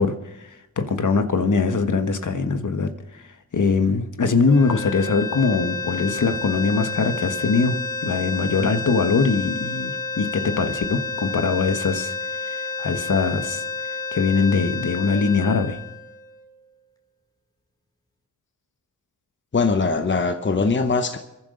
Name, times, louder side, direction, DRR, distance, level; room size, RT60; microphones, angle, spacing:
voice 1, 0.0-3.2 3.5-7.8 8.0-12.1 12.4-13.6 14.1-15.8, left 4 dB, 55° left, 7 dB, 1.4 m, -22 dB
sound 1, 4.5-16.7, left 4 dB, 10° left, 2.9 m, -30 dB
voice 2, 19.5-21.2, left 4 dB, 30° left, 7 dB, 1.0 m, -21 dB
26.0 x 11.0 x 3.9 m, 0.94 s
cardioid pair, 50°, 35 cm